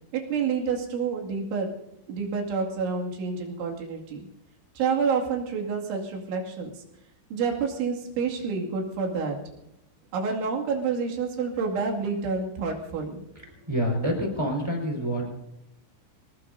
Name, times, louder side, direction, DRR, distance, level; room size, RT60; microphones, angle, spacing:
voice 1, 0.1-1.8 2.1-4.2 4.8-6.8 7.3-9.4 10.1-13.2, right 5 dB, 90° right, 0 dB, 4.7 m, -28 dB
voice 2, 13.7-15.3, equal, 5° right, 1 dB, 4.2 m, -27 dB
26.0 x 18.5 x 2.7 m, 0.82 s
omnidirectional pair, 5.2 m